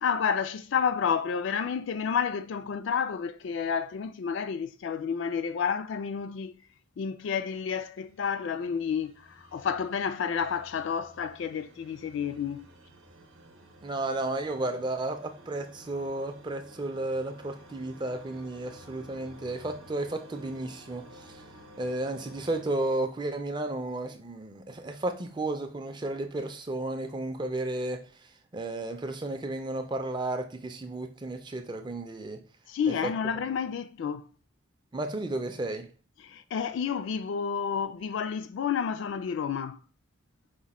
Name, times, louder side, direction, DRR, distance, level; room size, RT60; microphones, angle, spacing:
voice 1, 0.0-6.5 7.0-12.7 32.7-34.3 36.2-39.8, left 6 dB, 60° left, 0.3 m, -30 dB
sound 1, 7.7-23.8, right 1 dB, 65° right, 0.7 m, -53 dB
voice 2, 13.8-21.4 21.8-32.4 32.9-33.0 34.9-35.9, right 2 dB, 20° right, 0.4 m, -33 dB
4.9 x 2.1 x 4.1 m
head